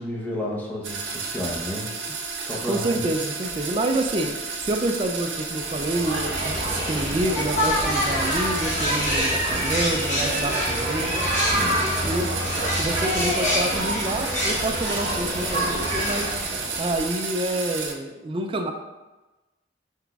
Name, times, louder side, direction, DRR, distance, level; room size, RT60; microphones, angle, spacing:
voice 1, 0.0-1.9 2.4-2.9 11.4-11.9, left 1 dB, 10° left, -4 dB, 0.8 m, -31 dB
sound 1, 0.8-17.9, right 4 dB, 70° right, 0.6 m, -32 dB
voice 2, 2.7-11.2 11.6-11.8 12.0-12.3 12.8-16.4 16.8-18.7, right 1 dB, 30° right, 4 dB, 0.3 m, -28 dB
sound 2, 5.6-17.2, equal, 40° left, 1.0 m, -26 dB
5.7 x 3.4 x 2.3 m, 1.1 s
head